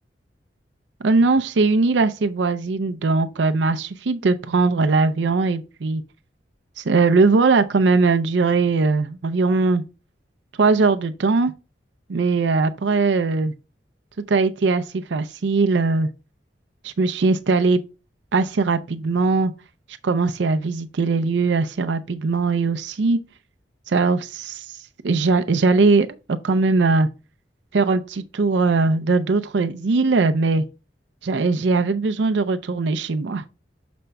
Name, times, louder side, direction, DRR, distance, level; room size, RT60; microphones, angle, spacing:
voice 1, 1.0-6.0 6.8-9.8 10.6-11.5 12.1-13.5 14.3-16.1 16.8-17.8 18.3-19.5 20.0-23.2 23.9-27.1 27.7-30.6 31.2-33.4, right 3 dB, 90° right, 0.5 m, -20 dB
6.7 x 5.1 x 3.3 m
head